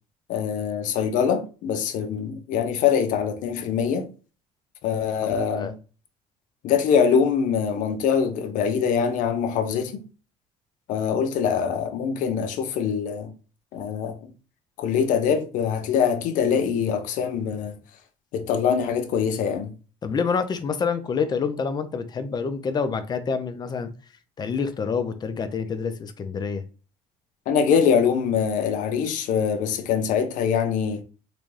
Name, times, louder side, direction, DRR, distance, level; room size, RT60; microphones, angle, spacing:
voice 1, 0.3-4.1 4.8-5.7 6.6-10.0 10.9-13.3 13.7-14.2 14.8-17.8 18.3-19.7 27.5-31.0, left 7 dB, 70° left, 0.7 m, -23 dB
voice 2, 5.2-5.7 20.0-23.9 24.4-26.6, left 5 dB, 30° left, 0.5 m, -27 dB
3.9 x 2.2 x 3.2 m
cardioid pair, 110°, 14 cm